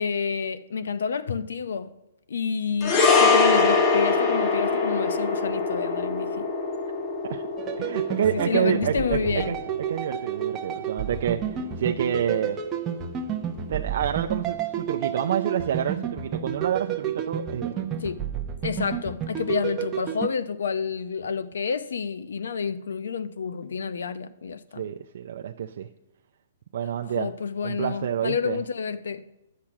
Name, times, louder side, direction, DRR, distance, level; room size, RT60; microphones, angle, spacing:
voice 1, 0.0-1.9 2.3-6.5 8.5-9.5 18.0-18.2 18.6-24.8 27.2-29.2, left 6 dB, 80° left, 0.7 m, -29 dB
sound 1, 2.8-11.3 11.5-11.7, left 4 dB, 25° left, 0.8 m, -24 dB
sound 2, 7.6-20.3, right 8 dB, 15° right, 0.6 m, -31 dB
voice 2, 7.8-9.2 9.5-9.6 9.9-12.6 13.7-17.9 24.8-25.9 26.7-27.3 27.6-28.6, right 9 dB, 55° right, 0.4 m, -28 dB
10.0 x 7.5 x 5.9 m
hypercardioid pair, 165°, 0 cm